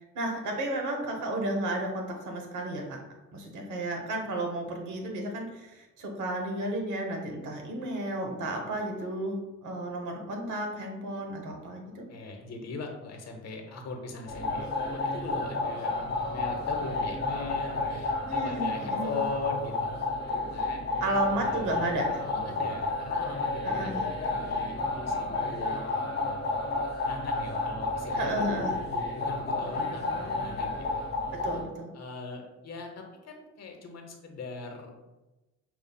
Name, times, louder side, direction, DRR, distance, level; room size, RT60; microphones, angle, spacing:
voice 1, 0.1-3.0 3.3-12.0 18.3-19.2 21.0-22.2 23.6-24.0 28.1-28.7 31.4-31.9, right 1 dB, 80° right, 2 dB, 1.0 m, -33 dB
voice 2, 12.1-15.9 16.2-19.9 20.3-21.0 22.2-25.9 26.7-31.1 31.9-34.9, left 3 dB, 60° left, 2 dB, 0.9 m, -40 dB
sound 1, 14.3-31.6, left 2 dB, 35° left, 1.0 m, -31 dB
6.9 x 2.3 x 2.2 m, 1.1 s
cardioid pair, 90°, 30 cm